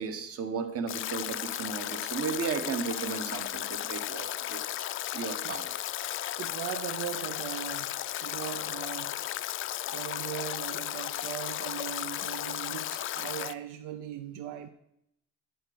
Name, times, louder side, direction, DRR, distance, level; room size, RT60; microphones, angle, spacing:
voice 1, 0.0-4.6 5.1-5.7, right 6 dB, 45° right, 1.4 m, -34 dB
Stream / Drip / Trickle dribble, 0.9-13.5, left 13 dB, 40° left, 0.4 m, -35 dB
voice 2, 6.4-9.2 9.9-14.7, right 11 dB, 75° right, 0.7 m, -39 dB
9.3 x 7.8 x 6.9 m
cardioid pair, 135°, 31 cm